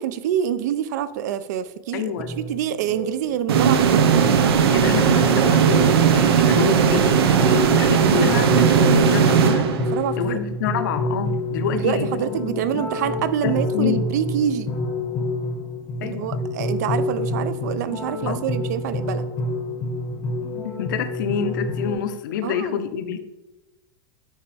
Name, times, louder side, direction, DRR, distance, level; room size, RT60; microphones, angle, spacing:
voice 1, 0.0-4.1 9.9-10.4 11.7-14.7 16.0-19.2 22.4-22.8, right 9 dB, 45° right, 14 dB, 0.3 m, -26 dB
voice 2, 1.9-2.3 4.7-9.8 10.2-12.4 13.4-14.0 16.0-16.3 18.3-18.5 20.6-23.2, left 8 dB, 55° left, 10 dB, 0.6 m, -27 dB
sound 1, 2.2-21.9, left 2 dB, 20° left, 0.7 m, -29 dB
sound 2, 3.5-10.2, right 7 dB, 90° right, 0.6 m, -17 dB
9.8 x 3.4 x 3.3 m, 1.0 s
supercardioid pair, 175°, 12 cm